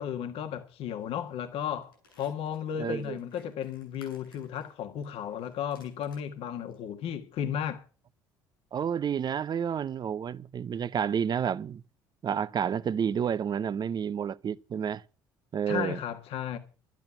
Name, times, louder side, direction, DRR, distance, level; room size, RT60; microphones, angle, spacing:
voice 1, 0.0-7.8 15.7-16.6, left 9 dB, 60° left, 1.6 m, -34 dB
sound 1, 1.0-1.3 1.6-6.3 6.7-6.8, left 4 dB, 90° left, 6.4 m, -61 dB
voice 2, 2.8-3.2 8.7-11.8 12.2-15.0 15.5-16.0, right 8 dB, 40° right, 0.7 m, -30 dB
12.0 x 10.5 x 6.9 m
hypercardioid pair, 55°, 11 cm